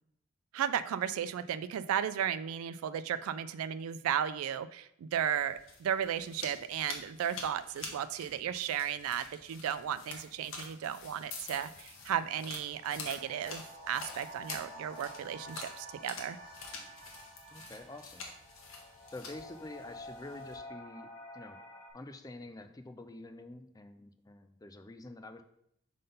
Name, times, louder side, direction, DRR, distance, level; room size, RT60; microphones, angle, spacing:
voice 1, 0.5-16.4, right 9 dB, 80° right, 13 dB, 0.3 m, -34 dB
sound 1, 5.4-20.6, left 4 dB, 70° left, 1.2 m, -48 dB
sound 2, 11.3-21.9, equal, 30° left, 1.8 m, -50 dB
voice 2, 17.5-18.2 19.1-21.6 21.9-25.4, left 2 dB, 15° left, 8 dB, 0.4 m, -47 dB
5.3 x 3.8 x 5.3 m, 0.74 s
head